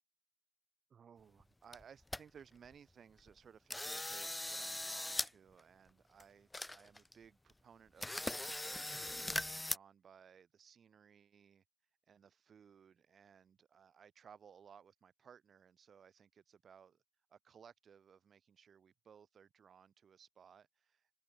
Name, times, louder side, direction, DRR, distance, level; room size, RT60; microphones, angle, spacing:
voice 1, 0.9-17.0 17.3-21.1, right 7 dB, 50° right, 3.1 m, -61 dB
sound 1, 1.4-1.5 1.7-2.2 2.6-2.7 3.2-3.4 3.7-5.3 5.6-5.7 6.2-6.3 6.5-7.1 7.5-7.6 8.0-9.8, left 1 dB, 10° left, 0.8 m, -40 dB
open air
cardioid pair, 90°, 0 cm